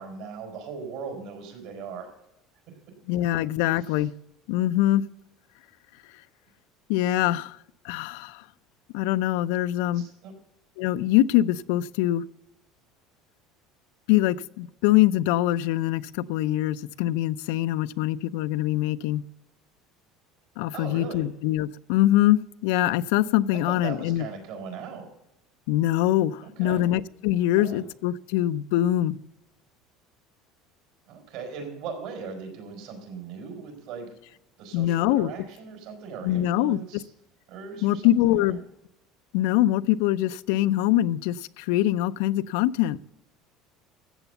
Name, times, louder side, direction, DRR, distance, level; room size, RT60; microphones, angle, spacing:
voice 1, 0.0-2.1 2.7-2.9 3.8-4.0 9.9-10.3 20.7-21.3 23.5-25.1 26.4-26.8 27.6-27.8 31.1-34.1 34.6-37.1 37.5-38.6, right 5 dB, 70° right, 4 dB, 4.9 m, -39 dB
voice 2, 3.1-4.1 4.5-5.0 6.9-7.6 7.8-8.4 8.9-10.0 10.8-12.2 14.1-19.2 20.6-24.2 25.7-29.2 34.7-35.3 36.2-37.0 37.8-38.6 39.3-43.0, left 14 dB, 80° left, 16 dB, 0.5 m, -23 dB
14.0 x 8.1 x 7.0 m, 0.85 s
cardioid pair, 150°, 0 cm